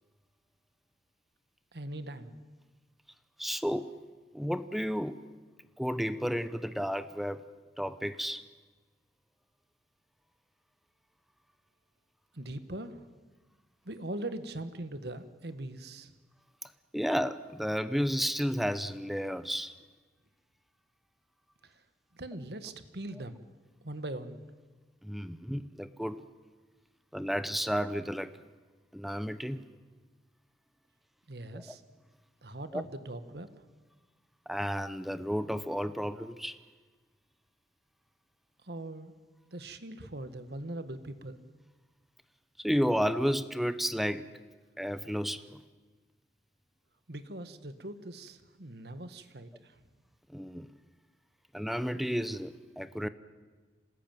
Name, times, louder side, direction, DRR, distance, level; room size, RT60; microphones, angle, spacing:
voice 1, 1.7-2.3 12.3-13.1 13.8-16.1 21.6-21.8 22.1-23.4 23.8-24.4 31.3-31.8 32.4-33.5 38.6-39.1 39.5-41.4 47.1-49.8, right 1 dB, 65° right, 11 dB, 1.6 m, -41 dB
voice 2, 3.4-3.9 4.3-5.2 5.8-7.4 7.8-8.4 16.6-19.7 25.0-26.3 27.1-28.3 28.9-29.6 31.5-31.7 32.7-32.8 34.5-36.6 42.6-44.3 44.8-45.6 50.3-50.7 51.5-53.1, equal, ahead, 12 dB, 0.7 m, -32 dB
26.5 x 19.5 x 9.2 m, 1.3 s
head